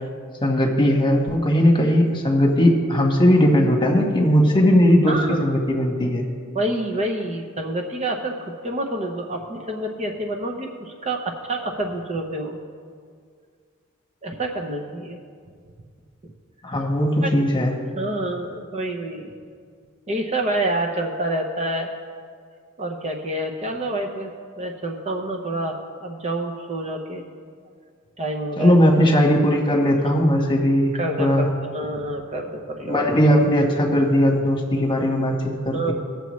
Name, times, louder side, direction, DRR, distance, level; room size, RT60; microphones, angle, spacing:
voice 1, 0.4-6.3 16.6-17.7 28.6-31.5 32.8-35.9, equal, 20° left, 0 dB, 1.3 m, -18 dB
voice 2, 5.1-5.4 6.5-8.3 8.6-12.5 14.2-15.2 17.2-17.3 18.0-19.3 20.1-21.9 22.8-24.3 24.6-25.7 26.0-27.2 28.2-28.8 30.9-33.2 35.7-35.9, right 1 dB, 30° right, 2 dB, 0.7 m, -27 dB
18.5 x 6.9 x 3.1 m, 2.1 s
head